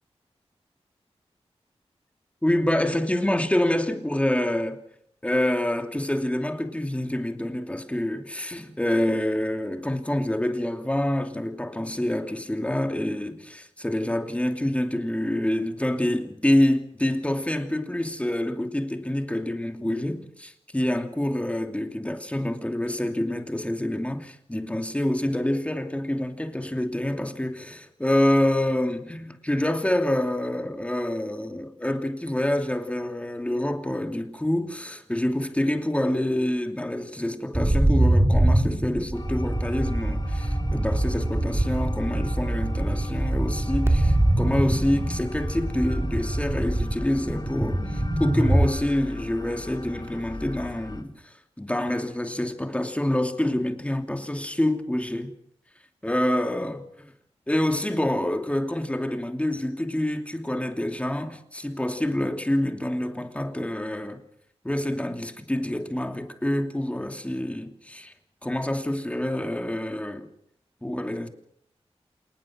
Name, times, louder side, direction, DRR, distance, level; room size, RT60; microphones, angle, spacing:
voice 1, 2.4-4.8 5.2-55.3 56.0-57.1 57.5-64.2 64.6-68.1 68.4-70.3 70.8-71.3, left 1 dB, 10° left, 2.7 m, -27 dB
sound 1, 37.5-48.7, right 1 dB, 25° right, 2.7 m, -24 dB
sound 2, 39.1-51.0, left 2 dB, 40° left, 2.6 m, -38 dB
28.0 x 19.0 x 6.2 m
wide cardioid pair, 90°, 11 cm